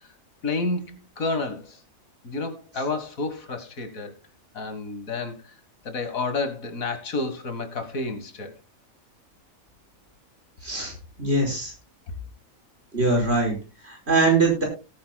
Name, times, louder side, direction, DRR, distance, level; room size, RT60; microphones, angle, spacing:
voice 1, 0.4-1.8 2.2-4.1 4.5-5.4 5.8-8.6, left 3 dB, 80° left, 2.1 m, -30 dB
voice 2, 10.6-10.9 11.2-11.7 12.9-13.5 13.8-14.6, right 3 dB, 50° right, 5.7 m, -22 dB
18.0 x 9.7 x 2.3 m
omnidirectional pair, 1.4 m